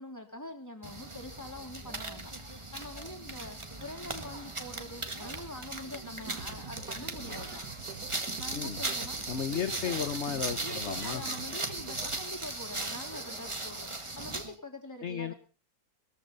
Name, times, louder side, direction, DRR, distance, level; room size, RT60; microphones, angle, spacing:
voice 1, 0.0-7.6 8.4-10.1 10.6-15.3, left 1 dB, 10° left, 4 dB, 3.1 m, -45 dB
sound 1, 0.8-14.5, right 2 dB, 20° right, 1.7 m, -38 dB
sound 2, 6.3-12.3, right 6 dB, 75° right, 2.1 m, -46 dB
voice 2, 8.5-8.8 9.3-11.2 15.0-15.3, left 8 dB, 50° left, 11 dB, 1.1 m, -34 dB
20.5 x 14.5 x 4.0 m, 0.37 s
omnidirectional pair, 1.6 m